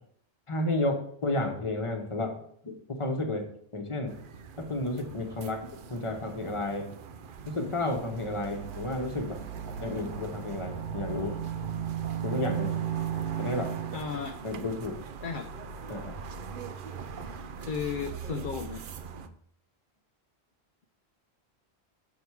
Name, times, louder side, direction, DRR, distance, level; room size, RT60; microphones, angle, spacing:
voice 1, 0.5-2.4 2.6-3.5 3.7-4.1 4.6-6.9 7.5-9.4 9.8-11.4 12.2-12.7 13.4-13.7 14.4-15.0 15.9-16.1, left 2 dB, 30° left, 3 dB, 1.1 m, -32 dB
sound 1, 4.1-19.3, right 5 dB, 60° right, 0.7 m, -43 dB
sound 2, 8.0-14.3, right 9 dB, 80° right, 1.1 m, -35 dB
voice 2, 13.9-14.4 15.2-15.5 17.6-18.8, left 6 dB, 55° left, 5 dB, 0.7 m, -34 dB
6.9 x 4.9 x 4.7 m, 0.64 s
omnidirectional pair, 1.1 m